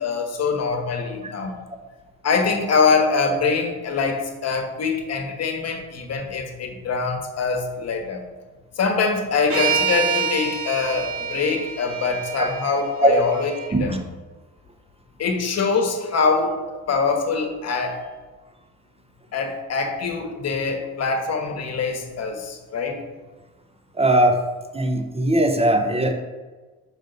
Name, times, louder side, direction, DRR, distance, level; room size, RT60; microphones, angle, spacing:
voice 1, 0.0-1.6 2.2-8.2 8.8-14.0 15.2-16.6 16.9-18.1 19.3-23.0, left 4 dB, 55° left, 4 dB, 1.2 m, -24 dB
sound 1, 9.5-13.7, right 7 dB, 45° right, 2.0 m, -27 dB
voice 2, 23.9-24.4 24.7-26.1, right 1 dB, 20° right, 5 dB, 0.7 m, -19 dB
6.4 x 4.9 x 3.9 m, 1.3 s
cardioid pair, 90°, 30 cm